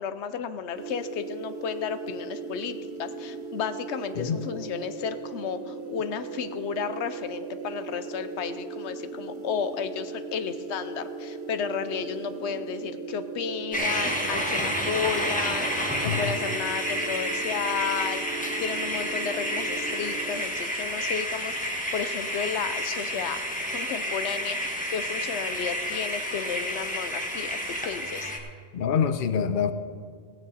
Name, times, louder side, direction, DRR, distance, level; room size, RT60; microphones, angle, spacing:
voice 1, 0.0-23.5 23.7-28.3, left 7 dB, 90° left, 11 dB, 1.0 m, -33 dB
sound 1, 0.7-20.4, right 4 dB, 70° right, 1.1 m, -38 dB
sound 2, 13.7-28.4, equal, 5° left, 1.3 m, -30 dB
voice 2, 28.7-29.7, left 7 dB, 55° left, 10 dB, 0.8 m, -25 dB
16.5 x 9.0 x 4.1 m, 2.1 s
omnidirectional pair, 1.1 m